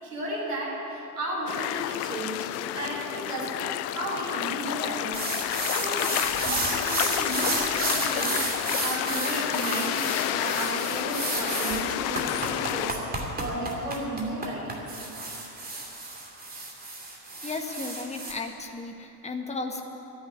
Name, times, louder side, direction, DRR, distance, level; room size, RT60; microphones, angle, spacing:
voice 1, 0.0-5.2 5.7-6.2 6.4-15.1, right 1 dB, 75° right, -3 dB, 4.2 m, -34 dB
sound 1, 1.5-12.9, left 15 dB, 35° left, 0.4 m, -30 dB
sound 2, 5.1-18.3, right 2 dB, 20° right, 2.7 m, -32 dB
voice 2, 17.4-19.8, left 3 dB, 15° left, 4 dB, 1.5 m, -34 dB
13.0 x 10.5 x 9.8 m, 3.0 s
figure-of-eight pair, 65°, 47 cm